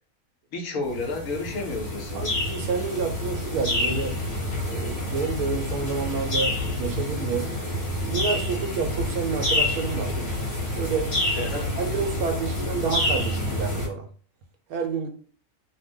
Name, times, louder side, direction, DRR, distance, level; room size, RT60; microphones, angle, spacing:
voice 1, 0.5-2.3 11.3-11.7, left 2 dB, 65° left, 1 dB, 1.0 m, -31 dB
sound 1, 0.9-13.9, left 1 dB, 35° left, 1.1 m, -28 dB
voice 2, 2.1-4.2 4.6-7.6 8.1-10.3 10.7-11.1 11.8-14.1 14.7-15.1, right 5 dB, 75° right, 4 dB, 1.1 m, -29 dB
2.7 x 2.0 x 3.5 m, 0.41 s
omnidirectional pair, 1.7 m